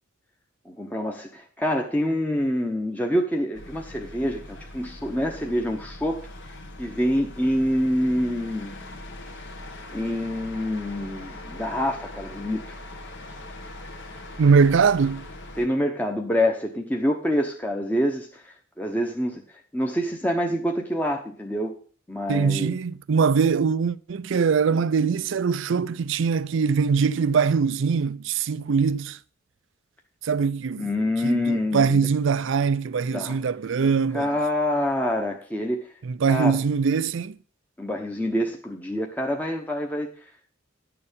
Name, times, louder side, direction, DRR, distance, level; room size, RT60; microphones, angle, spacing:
voice 1, 0.7-6.2 6.8-8.7 9.9-12.8 15.6-19.4 19.7-21.7 22.1-22.7 30.8-32.1 33.1-33.4 34.1-35.9 36.3-36.5 37.8-40.1, equal, 10° left, 0.9 m, -26 dB
sound 1, 3.5-15.7, left 1 dB, 60° left, 1.5 m, -41 dB
voice 2, 14.4-15.3 22.3-29.2 30.2-30.9 31.2-34.3 36.0-37.4, right 5 dB, 65° right, 0.4 m, -22 dB
11.0 x 6.9 x 5.1 m
head